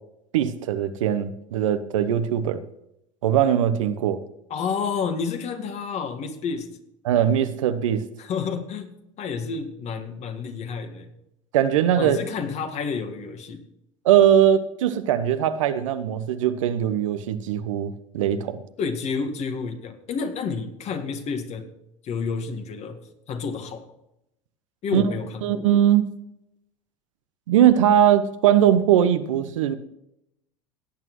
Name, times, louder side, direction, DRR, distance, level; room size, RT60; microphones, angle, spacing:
voice 1, 0.3-2.6 3.2-4.2 7.0-8.0 11.5-12.2 14.0-18.6 24.9-25.0 25.4-26.1 27.5-29.8, right 10 dB, 70° right, 0.9 m, -20 dB
voice 2, 4.5-6.7 8.2-11.1 12.0-13.6 18.8-21.7 22.0-23.0 23.3-23.9 24.8-25.7, left 5 dB, 40° left, 1.8 m, -30 dB
17.0 x 9.0 x 3.1 m
hypercardioid pair, 80°, 17 cm